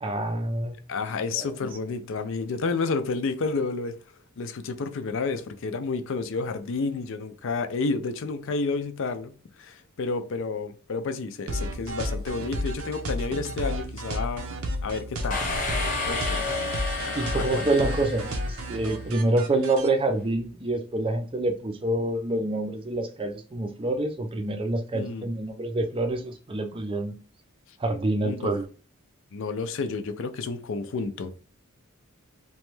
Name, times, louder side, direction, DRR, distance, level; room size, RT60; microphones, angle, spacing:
voice 1, 0.0-0.8 1.3-1.5 17.1-27.1 27.8-28.7, right 2 dB, 25° right, 0.4 m, -27 dB
voice 2, 0.9-4.0 4.4-14.5 14.8-15.4 16.1-16.5 17.0-17.9 24.9-25.3 28.2-28.5 29.3-31.4, left 4 dB, 65° left, 0.4 m, -30 dB
sound 1, 11.5-19.9, equal, 75° right, 0.6 m, -32 dB
sound 2, 15.3-19.1, left 3 dB, 40° left, 0.8 m, -31 dB
3.0 x 2.2 x 3.1 m
head